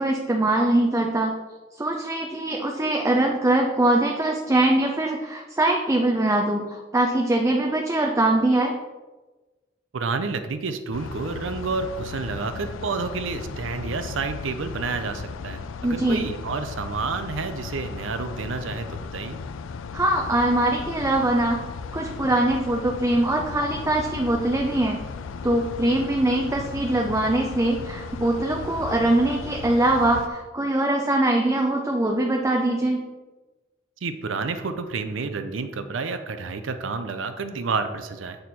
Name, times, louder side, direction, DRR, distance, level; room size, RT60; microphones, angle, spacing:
voice 1, 0.0-1.3 1.8-8.7 15.8-16.2 19.9-21.6 21.9-25.0 25.4-33.0, right 1 dB, 15° right, 1 dB, 0.5 m, -22 dB
voice 2, 9.9-19.4 34.0-38.4, right 4 dB, 75° right, 9 dB, 0.5 m, -30 dB
sound 1, 10.9-30.3, left 5 dB, 90° left, 0.4 m, -36 dB
7.8 x 4.4 x 4.1 m, 1.2 s
head